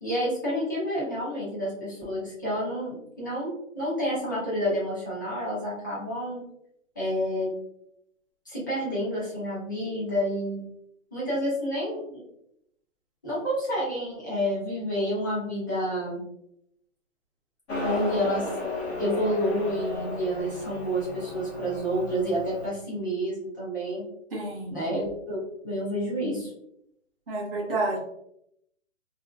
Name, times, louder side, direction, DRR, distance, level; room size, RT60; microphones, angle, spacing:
voice 1, 0.0-6.4 7.0-7.5 8.5-10.6 11.1-12.2 13.2-16.2 17.8-18.5 19.0-24.1 24.7-26.5, equal, 15° left, -8 dB, 0.5 m, -29 dB
Motorcycle, 17.7-22.7, left 2 dB, 55° left, 0.8 m, -34 dB
voice 2, 24.3-24.7 27.3-28.0, right 2 dB, 45° right, -2 dB, 0.8 m, -29 dB
2.7 x 2.5 x 2.3 m, 0.76 s
hypercardioid pair, 165°, 39 cm